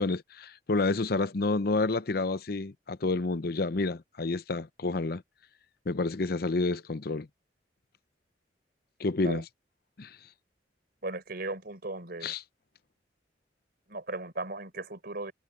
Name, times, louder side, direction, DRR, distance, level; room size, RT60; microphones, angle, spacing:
voice 1, 0.0-5.2 5.9-7.3 9.0-9.4 10.0-10.2 12.2-12.4, left 3 dB, 55° left, 0.7 m, -29 dB
voice 2, 11.0-12.3 13.9-15.3, right 2 dB, 55° right, 4.7 m, -37 dB
head